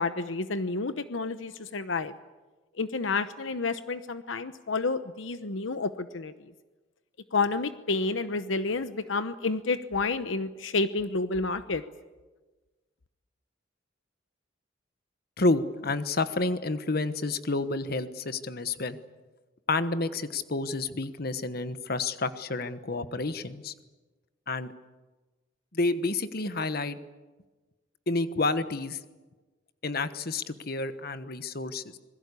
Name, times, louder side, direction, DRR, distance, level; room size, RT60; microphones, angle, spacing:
voice 1, 0.0-2.1 2.8-6.3 7.3-11.8, left 3 dB, 75° left, 11 dB, 0.9 m, -30 dB
voice 2, 15.4-19.0 19.7-23.7 24.5-24.7 25.7-27.0 28.1-29.0 29.8-32.0, left 3 dB, 50° left, 11 dB, 1.2 m, -29 dB
26.5 x 21.5 x 8.4 m, 1.2 s
head